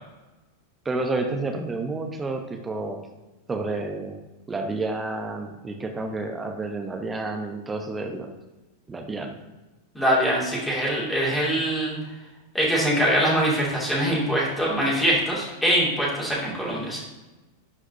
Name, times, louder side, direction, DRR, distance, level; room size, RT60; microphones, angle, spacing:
voice 1, 0.8-3.0 3.5-4.2 4.5-8.3 8.9-9.4, right 3 dB, 15° right, 4 dB, 0.8 m, -30 dB
voice 2, 9.9-11.9 12.5-17.0, equal, 5° left, -5 dB, 2.6 m, -23 dB
11.5 x 4.9 x 2.8 m, 1.1 s
figure-of-eight pair, 90°, 0 cm